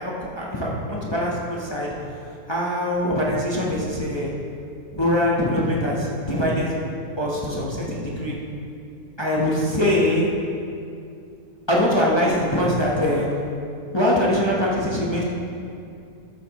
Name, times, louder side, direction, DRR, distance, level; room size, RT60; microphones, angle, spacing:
voice 1, 0.0-1.9 2.5-4.3 4.9-6.8 7.2-8.4 9.2-10.3 11.7-13.3 13.9-15.2, left 1 dB, 20° left, -4 dB, 0.9 m, -23 dB
12.5 x 8.4 x 3.0 m, 2.5 s
omnidirectional pair, 1.7 m